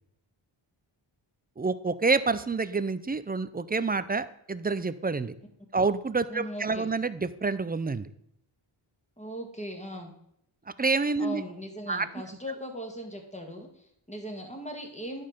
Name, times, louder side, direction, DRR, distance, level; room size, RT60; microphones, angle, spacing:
voice 1, 1.6-5.3 5.7-8.1 10.8-11.4 11.9-12.1, right 4 dB, 20° right, 14 dB, 0.4 m, -28 dB
voice 2, 6.3-6.9 9.2-10.1 11.2-15.2, equal, 15° left, 3 dB, 1.8 m, -39 dB
11.0 x 5.6 x 5.0 m, 0.74 s
wide cardioid pair, 80°, 50 cm